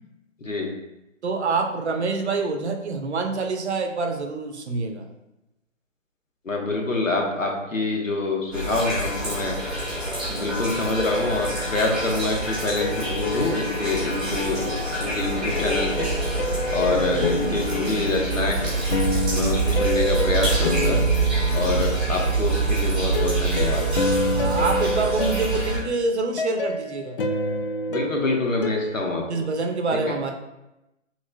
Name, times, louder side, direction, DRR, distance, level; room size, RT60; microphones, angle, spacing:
voice 1, 1.2-5.1 16.8-17.5 21.5-22.3 24.3-27.2 29.3-30.3, right 3 dB, 60° right, 4 dB, 0.8 m, -27 dB
voice 2, 6.4-9.8 10.3-14.7 15.0-16.1 16.7-18.7 19.3-21.0 21.5-23.9 27.9-29.2, left 3 dB, 85° left, 0 dB, 1.3 m, -26 dB
sound 1, 8.5-25.8, right 3 dB, ahead, 1.1 m, -26 dB
sound 2, 11.0-12.0 12.8-14.6 15.6-22.3 23.1-29.1, left 1 dB, 45° left, 0.5 m, -29 dB
6.3 x 3.2 x 2.3 m, 0.92 s
figure-of-eight pair, 145°, 38 cm